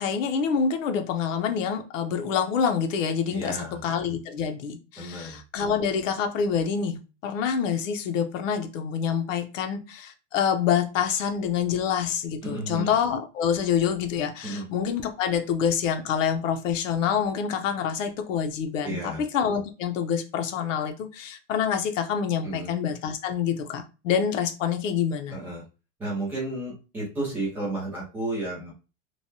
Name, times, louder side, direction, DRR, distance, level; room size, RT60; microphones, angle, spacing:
voice 1, 0.0-25.4, left 7 dB, 90° left, 7 dB, 0.7 m, -27 dB
voice 2, 3.3-3.8 5.0-5.4 12.4-12.9 14.4-14.7 18.8-19.2 22.4-22.7 25.3-25.6 26.0-28.7, right 2 dB, 5° right, -7 dB, 0.4 m, -32 dB
3.2 x 2.2 x 2.6 m, 0.30 s
supercardioid pair, 175°, 37 cm